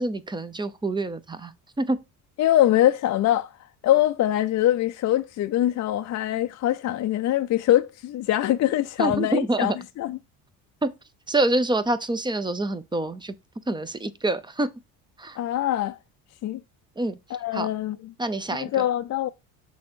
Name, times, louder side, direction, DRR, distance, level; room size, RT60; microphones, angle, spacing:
voice 1, 0.0-1.5 1.8-2.0 9.0-9.8 10.8-10.9 11.3-13.3 13.7-14.7 15.2-15.4 17.0-17.2 17.5-17.7 18.2-18.8, right 2 dB, 10° right, 0.7 m, -26 dB
voice 2, 2.4-3.5 3.8-10.2 15.4-16.0 16.4-16.6 17.3-18.0 18.5-19.3, left 13 dB, 50° left, 0.5 m, -23 dB
6.2 x 3.5 x 4.4 m
supercardioid pair, 85°, 36 cm